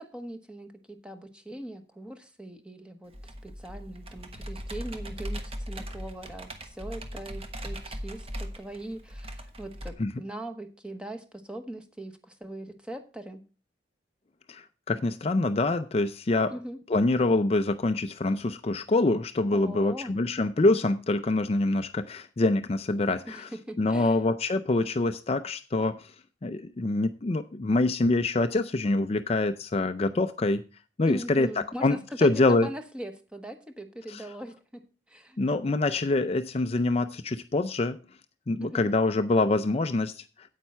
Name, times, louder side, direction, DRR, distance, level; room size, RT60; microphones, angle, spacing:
voice 1, 0.0-3.1 3.4-5.4 5.7-13.4 16.5-16.8 19.5-20.1 23.2-24.2 31.1-34.8 35.1-35.4 38.6-38.8, right 1 dB, 5° right, 7 dB, 1.0 m, -41 dB
Computer keyboard, 3.1-9.9, equal, 35° right, 1.1 m, -39 dB
voice 2, 14.5-16.5 16.9-23.5 23.8-26.1 26.4-30.6 31.0-32.7 34.1-34.3 35.4-38.0 38.5-40.6, left 2 dB, 35° left, 9 dB, 0.4 m, -25 dB
9.1 x 8.3 x 4.3 m, 0.34 s
head